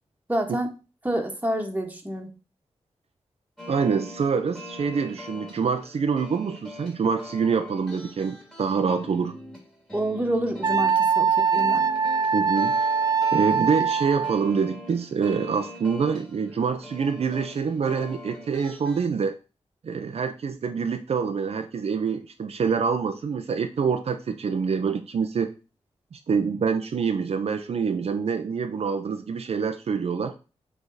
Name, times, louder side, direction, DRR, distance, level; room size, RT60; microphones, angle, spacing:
voice 1, 0.3-0.7 1.0-2.3 9.9-11.8, right 1 dB, 15° right, 3 dB, 1.5 m, -28 dB
sound 1, 3.6-19.1, left 1 dB, 5° left, 2.3 m, -43 dB
voice 2, 3.7-9.3 12.3-12.9 13.3-19.4 19.8-25.5 26.1-30.3, right 5 dB, 65° right, 6 dB, 0.7 m, -26 dB
Wind instrument woodwind instrument, 10.6-14.4, right 5 dB, 35° right, 0.4 m, -22 dB
8.1 x 3.6 x 4.1 m, 0.32 s
wide cardioid pair, 95°, 11 cm